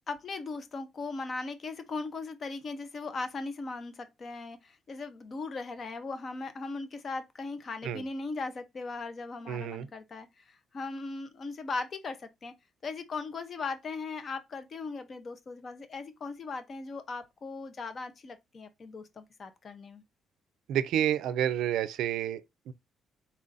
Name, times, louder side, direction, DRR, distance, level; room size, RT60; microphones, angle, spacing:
voice 1, 0.1-12.5 12.8-20.0, left 3 dB, 35° left, 0.6 m, -38 dB
voice 2, 9.5-9.9 20.7-22.7, right 10 dB, 75° right, 0.4 m, -30 dB
4.2 x 2.5 x 3.9 m
cardioid pair, 160°, 0 cm